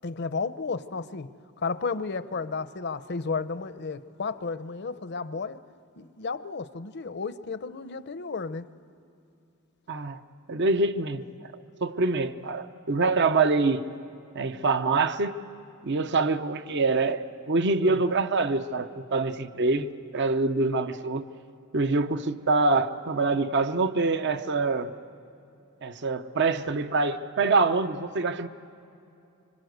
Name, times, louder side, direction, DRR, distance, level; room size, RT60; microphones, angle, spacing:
voice 1, 0.0-1.3 1.6-5.6 6.0-8.7 17.8-18.0, left 4 dB, 50° left, 0.7 m, -33 dB
voice 2, 9.9-10.2 10.5-11.2 11.8-13.8 14.3-15.3 15.8-21.3 21.7-24.9 25.8-28.5, right 3 dB, 55° right, 0.8 m, -25 dB
26.0 x 25.5 x 8.0 m
head